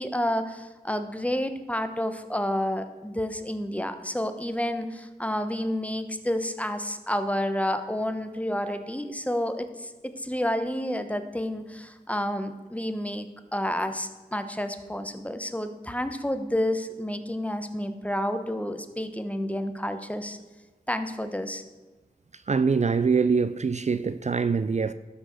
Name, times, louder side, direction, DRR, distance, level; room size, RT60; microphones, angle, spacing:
voice 1, 0.0-20.4 20.9-21.6, left 1 dB, 10° left, 1.1 m, -30 dB
voice 2, 22.5-24.9, right 5 dB, 45° right, 0.4 m, -24 dB
12.5 x 6.2 x 6.3 m
wide cardioid pair, 45°, 16 cm